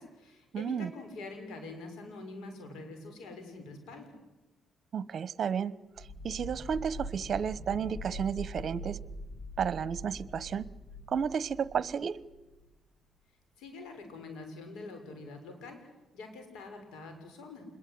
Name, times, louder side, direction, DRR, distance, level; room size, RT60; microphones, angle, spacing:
voice 1, 0.0-4.1 13.6-15.8 16.1-17.7, left 3 dB, 85° left, 6 dB, 6.7 m, -45 dB
voice 2, 0.5-0.9 4.9-9.0 9.6-10.7 11.1-12.2, right 7 dB, 55° right, 18 dB, 1.0 m, -32 dB
sound 1, 6.0-12.7, equal, 50° left, 4.6 m, -43 dB
27.0 x 21.5 x 9.7 m, 1.1 s
cardioid pair, 90°, 0 cm